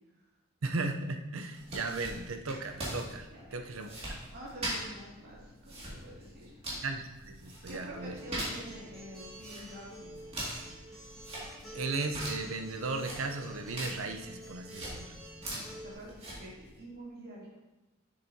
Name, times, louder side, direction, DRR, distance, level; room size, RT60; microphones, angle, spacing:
voice 1, 0.6-3.9 6.8-8.1 11.4-15.1, right 3 dB, 85° right, 6 dB, 0.7 m, -36 dB
sound 1, 1.5-16.8, right 1 dB, 30° right, 2.2 m, -43 dB
voice 2, 3.3-6.6 7.7-10.1 15.5-17.6, right 1 dB, 50° right, -5 dB, 2.2 m, -48 dB
Acoustic guitar, 7.9-15.9, right 1 dB, ahead, 2.5 m, -49 dB
7.3 x 6.8 x 2.8 m, 1.0 s
head